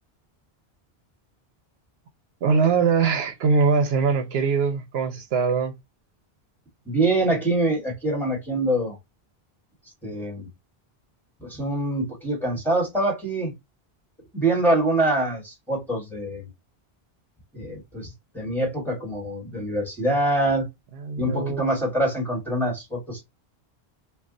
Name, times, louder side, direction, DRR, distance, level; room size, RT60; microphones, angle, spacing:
voice 1, 2.4-5.8 21.0-21.7, right 5 dB, 75° right, 0.8 m, -22 dB
voice 2, 6.8-9.0 10.0-10.5 11.4-13.5 14.3-16.5 17.5-20.6 21.2-23.2, right 1 dB, ahead, 1.3 m, -25 dB
2.4 x 2.3 x 3.6 m
omnidirectional pair, 1.1 m